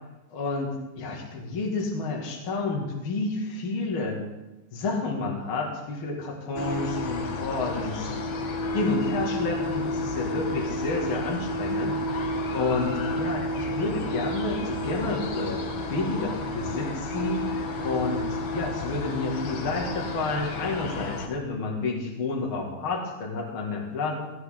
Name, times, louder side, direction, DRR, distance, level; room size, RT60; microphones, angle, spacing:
voice 1, 0.3-0.7 1.0-4.2 4.7-8.1 8.7-12.0 12.5-17.4 17.8-24.2, left 3 dB, 45° left, -1 dB, 2.7 m, -30 dB
sound 1, 6.6-21.3, left 1 dB, 60° left, 2.4 m, -31 dB
17.0 x 16.0 x 3.8 m, 1.0 s
omnidirectional pair, 3.5 m